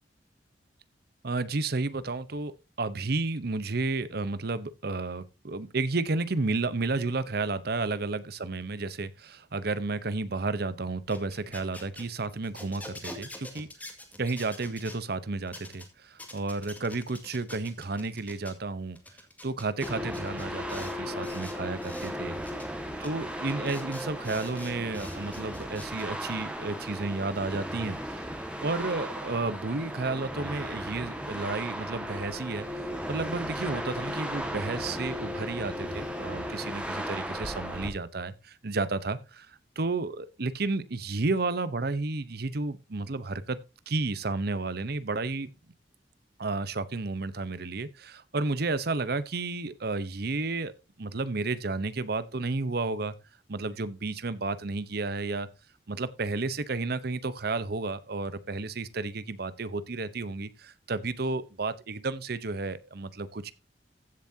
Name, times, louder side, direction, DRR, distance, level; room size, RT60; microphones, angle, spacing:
voice 1, 1.2-2.5 2.8-13.7 14.2-19.0 19.4-22.3 23.0-28.0 28.6-43.6 43.9-45.5 46.4-50.7 51.0-53.1 53.5-55.5 55.9-63.5, right 3 dB, 60° right, 0.9 m, -32 dB
sound 1, 11.0-15.0 15.5-15.8 16.2-18.5 19.0-20.9 21.2-22.1 22.4-22.7 23.0-23.1 23.5-26.0, left 1 dB, 10° left, 2.1 m, -46 dB
sound 2, 19.8-37.9, equal, 5° right, 1.7 m, -36 dB
15.5 x 7.3 x 2.8 m
head